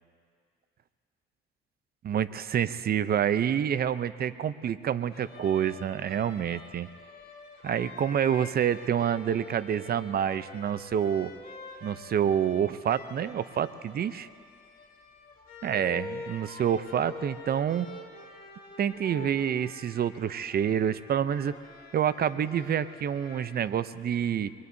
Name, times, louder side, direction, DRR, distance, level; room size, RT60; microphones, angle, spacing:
voice 1, 2.0-6.9 7.6-11.3 11.8-14.3 15.6-17.9 18.8-21.6 21.9-24.5, right 9 dB, 50° right, 14 dB, 0.6 m, -28 dB
sound 1, 5.1-23.7, left 3 dB, 45° left, 2.3 m, -46 dB
24.5 x 22.0 x 2.7 m, 2.4 s
cardioid pair, 90°, 20 cm